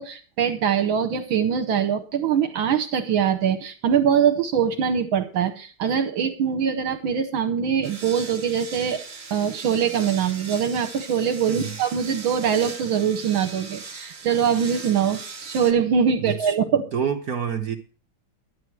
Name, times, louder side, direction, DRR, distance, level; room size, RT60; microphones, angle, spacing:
voice 1, 0.0-9.0 9.3-16.9, right 7 dB, 75° right, 7 dB, 1.7 m, -23 dB
sound 1, 7.8-15.7, right 4 dB, 30° right, 1.8 m, -39 dB
voice 2, 16.2-17.8, right 7 dB, 55° right, 5 dB, 1.2 m, -28 dB
11.5 x 9.4 x 4.6 m, 0.40 s
omnidirectional pair, 2.3 m